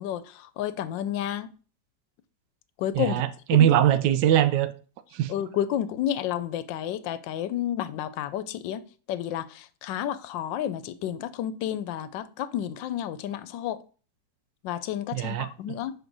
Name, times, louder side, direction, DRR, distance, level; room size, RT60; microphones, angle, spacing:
voice 1, 0.0-1.5 2.8-3.2 3.5-3.7 5.3-8.8 9.1-13.8 14.6-15.9, left 11 dB, 85° left, 1.3 m, -31 dB
voice 2, 2.9-4.7 5.1-5.3 15.1-15.8, right 11 dB, 80° right, 1.2 m, -22 dB
6.0 x 4.9 x 3.9 m
omnidirectional pair, 1.9 m